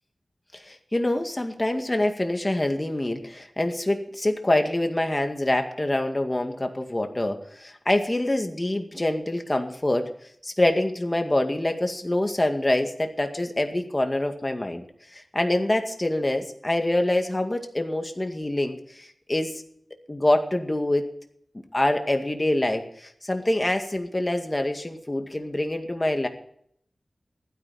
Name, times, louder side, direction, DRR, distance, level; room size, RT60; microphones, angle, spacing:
voice 1, 0.5-10.1 10.4-14.9 15.1-19.6 20.1-21.1 21.7-26.3, left 1 dB, 25° left, 5 dB, 2.1 m, -25 dB
15.0 x 13.0 x 4.3 m, 0.68 s
wide cardioid pair, 75°, 0 cm